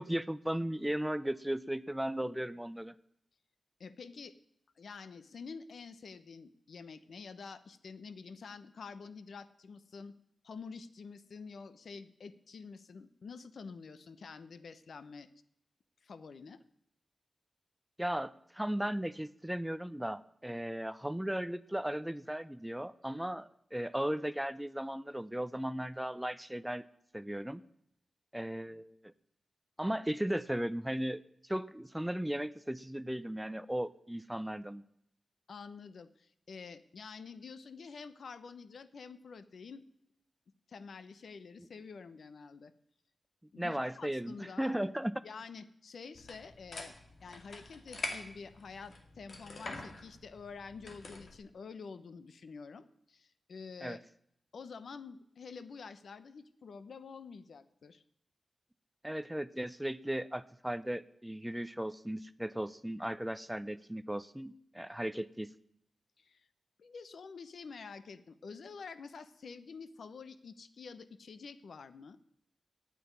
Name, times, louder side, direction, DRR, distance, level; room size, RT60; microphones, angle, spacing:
voice 1, 0.0-2.9 18.0-26.9 27.1-27.6 28.3-29.1 29.8-34.8 43.6-45.2 53.8-54.0 59.0-65.5, right 1 dB, 5° right, 17 dB, 0.4 m, -36 dB
voice 2, 3.8-4.3 4.8-10.2 10.4-15.3 16.0-16.6 35.5-39.8 40.7-42.7 43.5-44.8 45.2-46.9 47.2-54.0 54.5-58.0 66.2-66.5 66.8-72.2, left 5 dB, 70° left, 14 dB, 0.8 m, -48 dB
sound 1, 46.1-51.4, left 2 dB, 45° left, 2.0 m, -45 dB
9.4 x 8.6 x 9.4 m, 0.73 s
wide cardioid pair, 135°, 0 cm